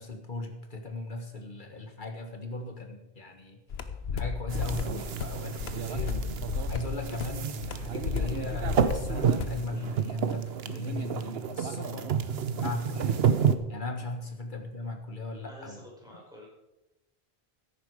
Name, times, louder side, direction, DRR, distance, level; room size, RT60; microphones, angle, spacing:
voice 1, 0.0-3.6 4.1-6.2 6.7-12.1 12.5-13.3 13.7-15.8, left 2 dB, 50° left, 4 dB, 1.8 m, -38 dB
sound 1, 3.7-9.6, left 6 dB, 80° left, 1.1 m, -34 dB
sound 2, 4.5-13.6, right 7 dB, 75° right, 1.0 m, -30 dB
voice 2, 15.4-16.5, equal, 5° right, -5 dB, 5.2 m, -49 dB
13.5 x 10.5 x 4.8 m, 0.95 s
omnidirectional pair, 1.0 m